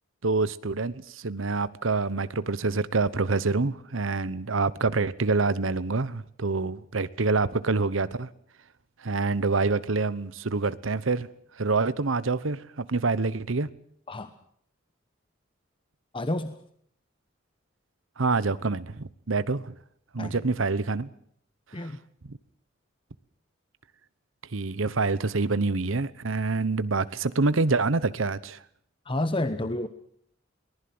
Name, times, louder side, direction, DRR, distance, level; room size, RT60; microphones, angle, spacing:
voice 1, 0.2-8.3 9.0-11.3 11.5-13.7 18.2-19.7 20.1-21.1 21.8-21.9 22.2-22.3 24.5-28.6, right 3 dB, 85° right, 1.0 m, -26 dB
voice 2, 16.1-16.6 20.2-20.4 21.7-22.0 29.1-29.9, left 1 dB, 25° left, 1.0 m, -29 dB
23.0 x 19.5 x 7.9 m
head